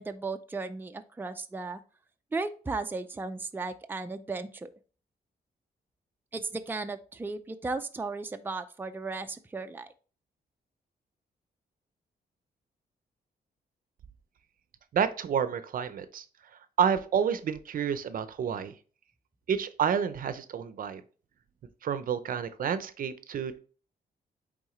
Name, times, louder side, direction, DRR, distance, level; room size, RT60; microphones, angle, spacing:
voice 1, 0.0-1.8 2.3-4.7 6.3-9.9, right 3 dB, 10° right, 8 dB, 0.5 m, -35 dB
voice 2, 14.9-16.2 16.8-18.7 19.5-21.0 21.8-23.6, right 7 dB, 60° right, 13 dB, 0.6 m, -29 dB
8.6 x 3.6 x 3.1 m, 0.38 s
cardioid pair, 120°, 16 cm